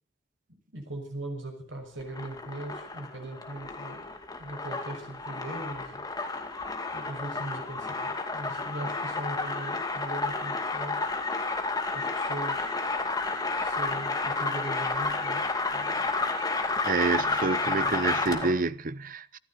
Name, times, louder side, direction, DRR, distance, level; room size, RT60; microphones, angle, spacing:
voice 1, 0.7-4.1 4.4-6.1 6.9-11.1 11.9-12.8 13.6-16.1 17.0-17.4, right 1 dB, 80° right, 5.9 m, -40 dB
sound 1, 2.0-18.6, left 3 dB, 20° left, 2.4 m, -31 dB
voice 2, 16.8-19.4, right 4 dB, 45° right, 0.7 m, -28 dB
25.5 x 13.5 x 4.1 m
head